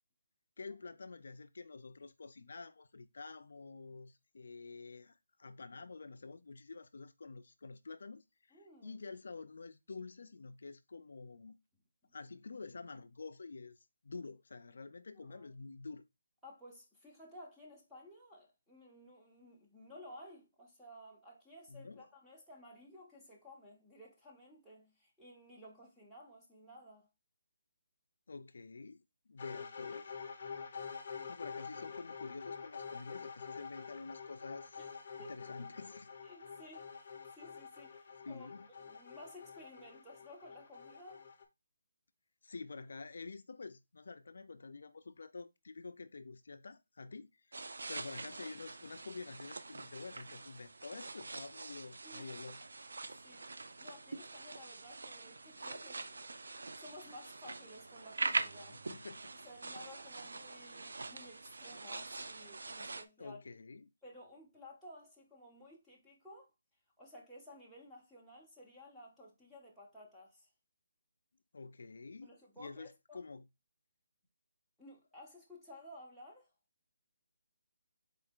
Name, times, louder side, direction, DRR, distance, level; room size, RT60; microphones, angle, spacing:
voice 1, 0.6-11.6 12.1-13.8 14.0-16.1 21.7-22.1 28.3-29.0 29.3-30.1 31.3-34.8 35.2-36.1 38.2-38.7 42.4-52.6 58.7-59.3 63.2-63.9 71.5-72.3 72.6-73.5, left 4 dB, 60° left, 0.4 m, -48 dB
voice 2, 8.5-9.0 12.0-12.1 15.2-15.5 16.4-27.1 34.8-34.9 35.2-35.3 36.2-38.5 38.8-41.3 52.0-52.4 53.1-56.4 56.8-58.8 59.3-63.4 64.0-66.5 67.0-70.5 72.2-73.2 74.8-76.5, left 1 dB, ahead, 0.7 m, -55 dB
sound 1, 29.4-41.4, left 6 dB, 35° left, 0.7 m, -47 dB
sound 2, 47.5-63.0, right 3 dB, 80° right, 0.4 m, -44 dB
3.9 x 3.3 x 3.6 m
hypercardioid pair, 175°, 0 cm